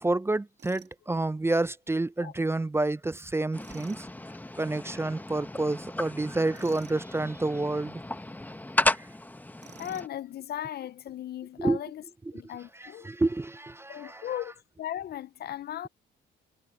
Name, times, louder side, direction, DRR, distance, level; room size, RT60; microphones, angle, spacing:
voice 1, 0.0-4.1 4.6-8.0 9.0-9.1 11.6-11.8 12.8-14.2, right 2 dB, 10° right, 0.4 m, -29 dB
Tools, 0.6-1.0 3.6-4.0 6.5-7.0 9.6-10.2, right 9 dB, 60° right, 1.9 m, -52 dB
sound 1, 3.5-10.1, left 1 dB, 10° left, 1.1 m, -34 dB
voice 2, 9.8-12.0 12.3-13.1 13.9-14.5 14.8-15.9, left 11 dB, 55° left, 0.4 m, -37 dB
cardioid pair, 90°, 20 cm